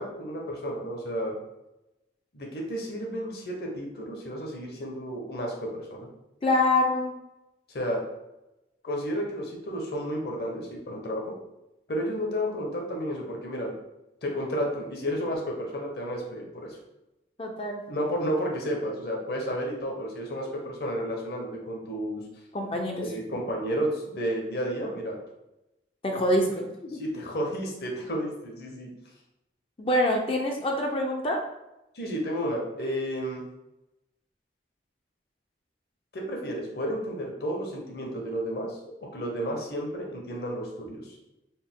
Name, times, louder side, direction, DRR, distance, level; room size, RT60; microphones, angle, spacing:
voice 1, 0.0-1.4 2.3-6.1 7.7-8.0 8.8-11.4 11.9-13.7 14.2-16.8 17.9-22.2 23.0-25.2 26.9-28.9 31.9-33.4 36.1-41.1, equal, 55° left, 0 dB, 0.8 m, -32 dB
voice 2, 6.4-7.1 17.4-17.8 22.5-23.1 26.0-27.0 29.8-31.4, left 1 dB, 30° left, 1 dB, 0.4 m, -25 dB
4.1 x 2.1 x 3.6 m, 0.93 s
head